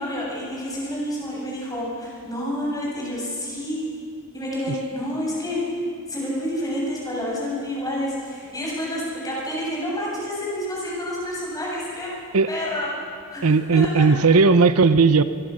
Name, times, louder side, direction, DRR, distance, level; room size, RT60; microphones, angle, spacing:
voice 1, 0.0-3.8 4.3-5.6 6.1-12.1 12.5-12.9 13.3-13.5 13.7-14.1, left 1 dB, 15° left, -4 dB, 7.5 m, -29 dB
voice 2, 13.4-15.2, right 4 dB, 75° right, 12 dB, 0.7 m, -16 dB
24.5 x 23.0 x 6.5 m, 2.5 s
head